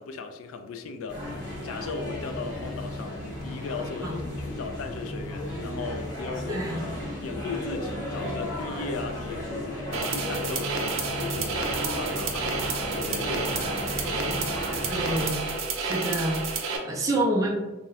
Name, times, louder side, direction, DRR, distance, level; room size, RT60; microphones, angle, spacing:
voice 1, 0.0-6.9 7.2-12.5 12.9-13.9 15.8-15.9, left 4 dB, 85° left, 7 dB, 0.3 m, -37 dB
sound 1, 1.1-15.3, left 1 dB, 20° left, 1.1 m, -34 dB
voice 2, 6.5-7.0 14.9-15.5 15.7-17.6, right 1 dB, 15° right, -2 dB, 0.3 m, -28 dB
sound 2, 9.9-16.8, right 4 dB, 80° right, 0.5 m, -30 dB
Speech / Shout / Subway metro underground, 11.3-16.6, equal, ahead, 0.7 m, -43 dB
2.7 x 2.3 x 3.0 m, 1.1 s
head